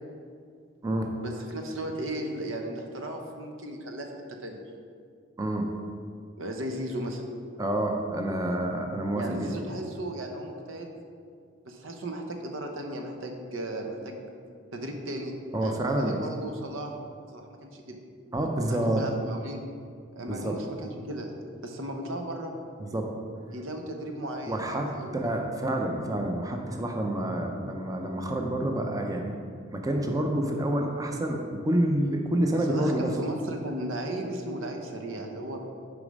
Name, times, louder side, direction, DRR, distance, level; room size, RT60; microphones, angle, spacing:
voice 1, 1.2-4.1 4.4-4.6 6.4-7.2 9.1-10.9 11.6-14.3 14.7-15.3 15.6-16.9 17.3-18.0 18.7-19.6 20.1-21.3 21.6-22.5 23.5-25.2 32.5-35.6, right 1 dB, 90° right, 3 dB, 0.9 m, -35 dB
voice 2, 5.4-5.7 7.6-9.5 15.5-16.2 18.3-19.0 20.3-20.6 22.8-23.0 24.5-29.3 29.7-33.1, right 1 dB, 20° right, 2 dB, 0.6 m, -28 dB
6.6 x 5.0 x 5.2 m, 2.2 s
head